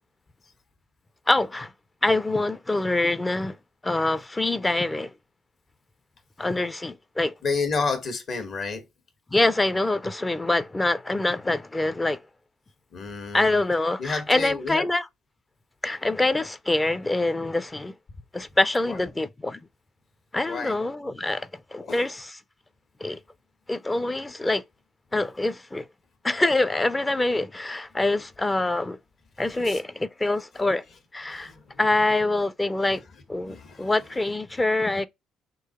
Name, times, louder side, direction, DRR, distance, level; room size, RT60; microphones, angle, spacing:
voice 1, 1.3-1.7 2.0-3.6 3.8-5.1 6.4-7.3 9.3-12.2 13.3-15.1 15.8-17.9 18.3-19.7 20.3-22.4 23.0-23.2 23.7-24.6 25.1-25.9 26.2-29.0 29.4-30.8 31.1-31.5 31.8-33.0 33.3-35.1, left 2 dB, 20° left, 0.5 m, -25 dB
voice 2, 7.4-8.8 12.9-13.6 14.0-14.8 18.8-19.0 20.5-20.8 21.8-22.0 29.5-29.8 31.3-31.7 33.4-33.9, left 4 dB, 60° left, 1.5 m, -30 dB
3.8 x 3.0 x 4.2 m
supercardioid pair, 80°, 0 cm